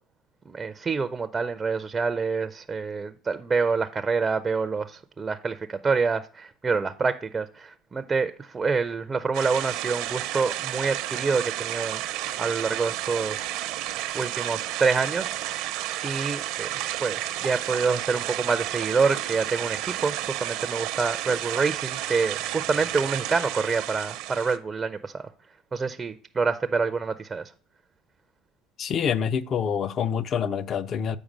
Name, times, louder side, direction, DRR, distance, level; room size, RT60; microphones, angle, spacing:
voice 1, 0.5-13.5 14.1-15.3 16.0-16.7 17.0-25.3 25.7-27.5, right 4 dB, 20° right, 0.5 m, -27 dB
sound 1, 9.3-24.6, right 13 dB, 70° right, 0.7 m, -31 dB
voice 2, 28.8-31.2, left 7 dB, 40° left, 0.5 m, -26 dB
7.3 x 4.7 x 5.2 m
supercardioid pair, 100°, 0 cm